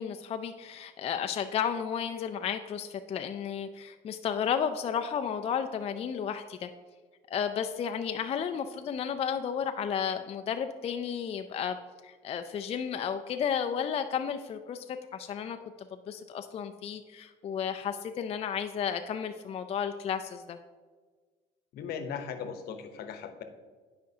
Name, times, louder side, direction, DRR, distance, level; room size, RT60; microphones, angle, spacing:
voice 1, 0.0-6.7 7.3-11.8 12.0-15.6 16.1-20.6, left 7 dB, 35° left, 7 dB, 0.3 m, -33 dB
voice 2, 21.7-23.4, left 7 dB, 70° left, 7 dB, 0.8 m, -38 dB
10.0 x 5.1 x 2.7 m, 1.4 s
cardioid pair, 110°, 17 cm